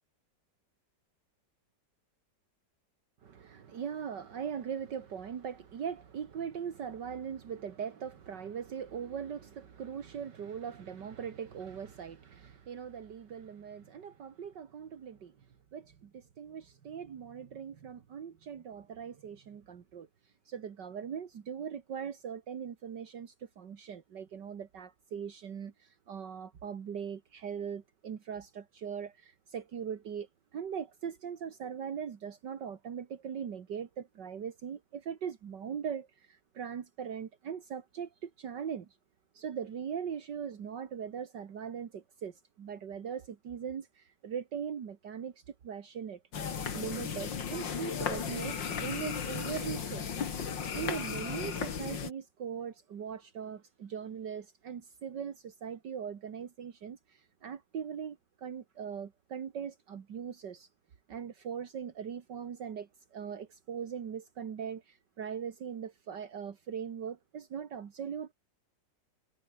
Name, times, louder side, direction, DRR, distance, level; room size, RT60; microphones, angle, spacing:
voice 1, 3.2-15.4 15.7-20.1 20.5-38.9 39.3-46.2 46.7-50.2 50.7-60.7 61.1-68.3, right 7 dB, 70° right, 2.2 m, -40 dB
sound 1, 46.3-52.1, left 7 dB, 85° left, 2.7 m, -35 dB
omnidirectional pair, 2.0 m